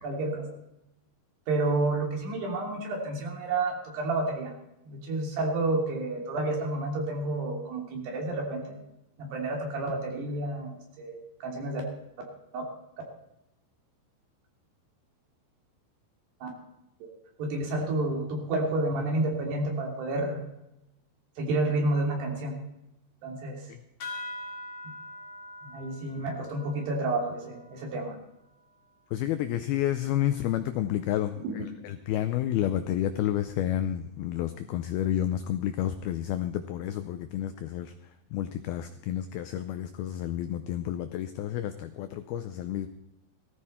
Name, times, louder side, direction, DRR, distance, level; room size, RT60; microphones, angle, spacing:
voice 1, 0.0-0.5 1.5-4.5 4.8-8.8 9.2-11.8 12.5-12.6 16.4-16.5 17.4-20.4 21.4-22.6 23.2-23.6 25.6-28.2 31.4-31.6, right 2 dB, 65° right, 0 dB, 4.9 m, -30 dB
sound 1, 24.0-28.9, left 2 dB, 45° left, 2.8 m, -44 dB
voice 2, 29.1-42.9, left 11 dB, 85° left, 10 dB, 2.1 m, -30 dB
19.0 x 14.5 x 4.3 m, 0.89 s
omnidirectional pair, 5.2 m